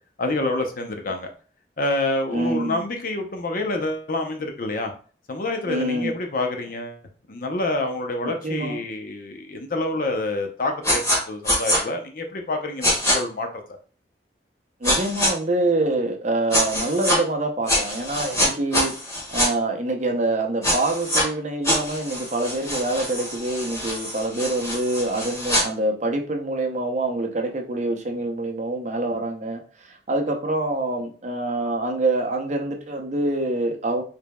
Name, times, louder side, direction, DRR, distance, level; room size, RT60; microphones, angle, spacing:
voice 1, 0.2-1.3 1.8-4.9 5.3-7.0 7.3-13.5, left 2 dB, 50° left, 4 dB, 0.7 m, -27 dB
voice 2, 2.3-2.8 5.7-6.1 8.2-8.8 14.8-18.9 19.3-34.0, right 2 dB, 45° right, 3 dB, 0.7 m, -25 dB
sound 1, 10.8-11.2 11.5-11.8 12.8-13.2 14.8-15.3 16.5-17.2 17.7-19.5 20.6-21.2 21.6-25.6, equal, 20° left, 1.6 m, -24 dB
5.0 x 3.3 x 2.2 m, 0.40 s
head